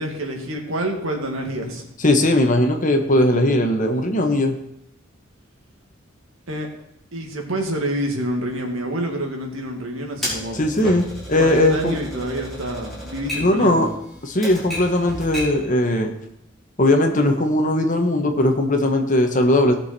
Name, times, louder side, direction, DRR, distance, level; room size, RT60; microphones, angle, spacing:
voice 1, 0.0-1.9 6.5-6.7 7.1-10.6 11.4-13.9, right 1 dB, 80° right, 2 dB, 2.3 m, -27 dB
voice 2, 2.0-4.6 10.5-12.0 13.4-13.9 14.2-16.1 16.8-19.7, left 1 dB, 40° left, 4 dB, 1.5 m, -19 dB
Typewriter, 10.2-15.7, equal, ahead, 4.9 m, -33 dB
18.5 x 6.6 x 4.4 m, 0.79 s
head